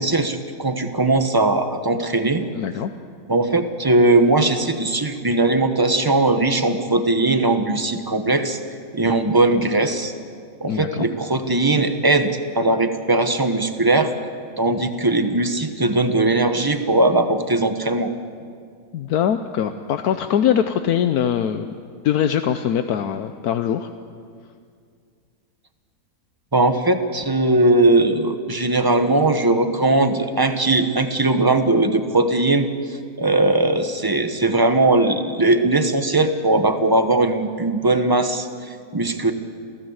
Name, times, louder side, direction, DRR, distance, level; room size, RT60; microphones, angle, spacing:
voice 1, 0.0-2.5 3.3-8.6 8.9-10.1 10.6-14.1 14.6-18.1 26.5-32.7 33.2-39.3, right 2 dB, 15° right, 8 dB, 1.1 m, -19 dB
voice 2, 2.5-2.9 10.7-11.1 18.9-21.7 22.0-23.9, left 9 dB, 75° left, 9 dB, 1.3 m, -22 dB
27.5 x 16.5 x 8.0 m, 2.2 s
omnidirectional pair, 1.6 m